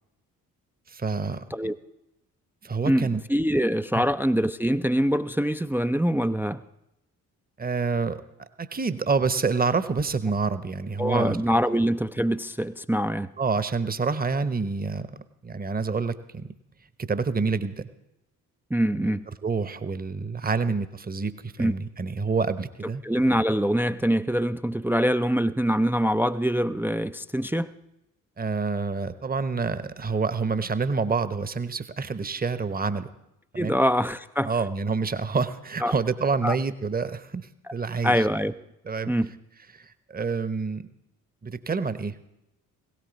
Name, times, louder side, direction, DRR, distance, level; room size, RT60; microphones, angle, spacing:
voice 1, 0.9-1.7 2.6-3.2 3.9-4.0 7.6-8.2 8.6-11.4 11.6-11.8 13.4-15.2 15.4-16.5 17.1-17.9 18.9-19.1 19.4-23.0 28.4-33.1 33.5-33.8 34.4-38.2 38.8-39.1 39.7-40.9 41.4-42.2, right 4 dB, 20° right, 13 dB, 1.0 m, -27 dB
voice 2, 2.9-6.6 11.0-13.3 18.7-19.3 21.6-21.7 23.0-27.7 33.6-34.5 35.8-35.9 36.4-36.6 38.0-38.5 39.1-39.3, equal, 5° right, 11 dB, 0.5 m, -24 dB
17.0 x 17.0 x 4.1 m, 0.86 s
hypercardioid pair, 40°, 44 cm